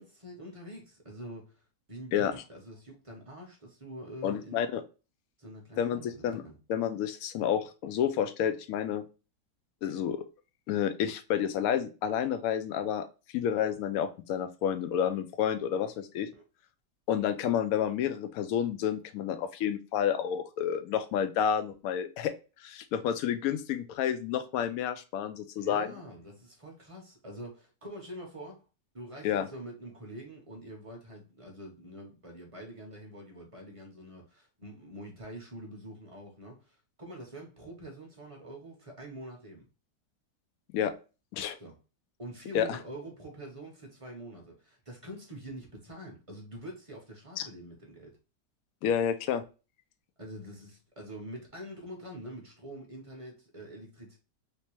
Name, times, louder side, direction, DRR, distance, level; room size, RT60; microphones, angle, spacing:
voice 1, 0.0-4.6 5.4-6.6 16.3-16.4 25.6-28.7 28.9-39.6 41.6-41.8 42.2-48.2 50.2-54.2, right 1 dB, 35° right, 0.5 m, -45 dB
voice 2, 4.2-4.8 5.8-6.4 6.7-9.0 9.8-10.2 10.7-13.1 13.3-16.3 17.1-22.3 22.6-25.9 29.2-29.5 40.7-40.9 41.3-41.6 42.5-42.8 47.4-47.5 48.8-49.4, left 9 dB, 70° left, 0.9 m, -30 dB
3.3 x 2.8 x 2.9 m
omnidirectional pair, 1.8 m